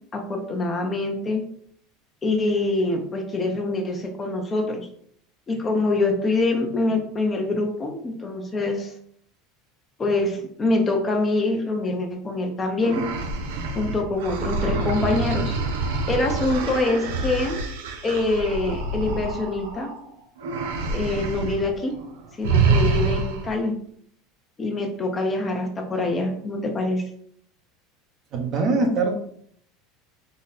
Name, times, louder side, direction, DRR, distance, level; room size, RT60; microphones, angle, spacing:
voice 1, 0.1-1.4 2.2-4.9 5.5-8.9 10.0-13.0 13.7-15.6 16.1-17.6 18.0-19.9 20.9-22.0 22.4-23.8 24.6-27.1, left 2 dB, 25° left, 2 dB, 1.0 m, -25 dB
sound 1, 12.8-20.0 20.4-21.6 21.9-22.1 22.4-23.6, right 3 dB, 85° right, 0.9 m, -26 dB
voice 2, 28.3-29.2, right 3 dB, 50° right, 2 dB, 1.2 m, -22 dB
4.0 x 3.1 x 4.2 m, 0.64 s
supercardioid pair, 105°, 0 cm